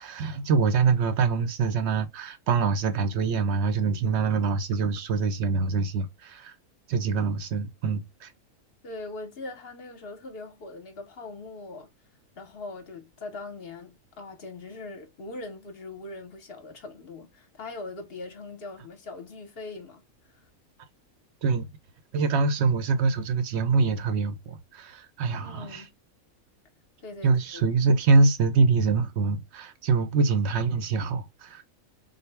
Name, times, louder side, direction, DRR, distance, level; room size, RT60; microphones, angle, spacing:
voice 1, 0.0-6.6 6.9-8.3 21.4-21.7 22.1-25.8 27.2-31.6, right 4 dB, 65° right, 0.7 m, -24 dB
voice 2, 8.8-11.9 12.4-20.0 25.4-25.9 27.0-27.7, left 3 dB, 55° left, 0.8 m, -41 dB
3.9 x 2.0 x 3.2 m
omnidirectional pair, 1.5 m